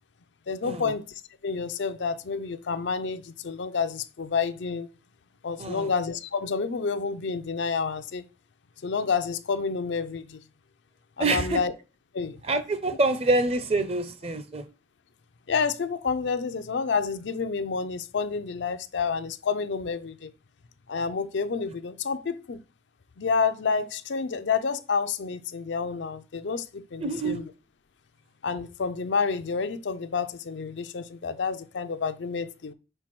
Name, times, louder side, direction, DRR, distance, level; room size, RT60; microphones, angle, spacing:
voice 1, 0.5-1.0 1.4-4.9 5.4-8.3 8.8-10.4 11.2-11.7 12.1-12.4 15.5-20.3 20.9-22.6 23.2-27.5 28.4-32.7, left 5 dB, 75° left, 0.5 m, -29 dB
voice 2, 5.6-5.9 11.2-11.6 12.4-14.6 27.0-27.4, right 2 dB, 35° right, 0.6 m, -26 dB
4.5 x 4.5 x 5.9 m
head